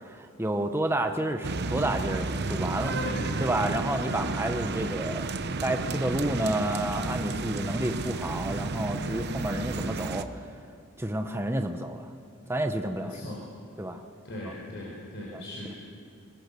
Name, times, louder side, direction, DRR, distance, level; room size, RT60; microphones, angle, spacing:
voice 1, 0.0-2.9 3.4-5.3 5.6-10.4 11.0-12.1 12.5-13.3 13.8-14.0 14.4-14.5 15.3-15.4, right 1 dB, 10° right, 6 dB, 0.9 m, -30 dB
sound 1, 1.4-10.2, right 3 dB, 50° right, 0.9 m, -32 dB
voice 2, 2.9-4.0 13.0-13.9 14.2-15.8, left 1 dB, 55° left, -4 dB, 4.3 m, -39 dB
23.0 x 21.5 x 6.9 m, 2.4 s
head